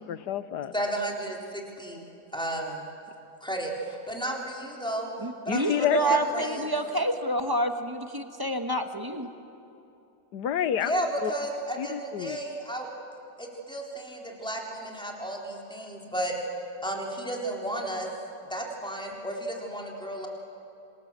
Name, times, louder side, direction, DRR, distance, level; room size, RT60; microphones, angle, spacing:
voice 1, 0.0-0.7 5.5-6.2 10.3-10.9 11.2-11.3 11.8-12.4, left 10 dB, 80° left, 13 dB, 1.5 m, -29 dB
voice 2, 0.7-2.1 2.3-2.9 3.4-5.1 5.5-6.7 10.8-12.9 13.4-16.3 16.8-18.1 18.5-20.3, right 1 dB, 5° left, -1 dB, 3.9 m, -33 dB
voice 3, 5.2-9.3, right 1 dB, 15° right, 6 dB, 1.2 m, -28 dB
26.5 x 26.5 x 7.6 m, 2.8 s
omnidirectional pair, 1.8 m